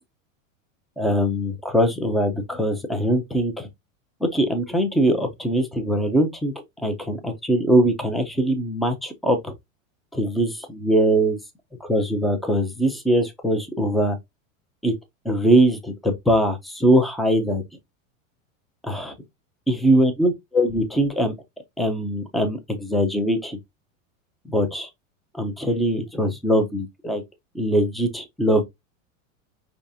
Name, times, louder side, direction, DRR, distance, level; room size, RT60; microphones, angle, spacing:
voice 1, 1.0-3.7 4.2-9.5 10.1-11.4 11.8-14.2 14.8-14.9 15.2-17.6 18.8-19.1 19.7-21.3 21.8-23.6 24.5-24.9 25.4-27.2 27.5-28.6, right 1 dB, ahead, 0.4 m, -22 dB
4.8 x 3.5 x 2.6 m
supercardioid pair, 145°, 40 cm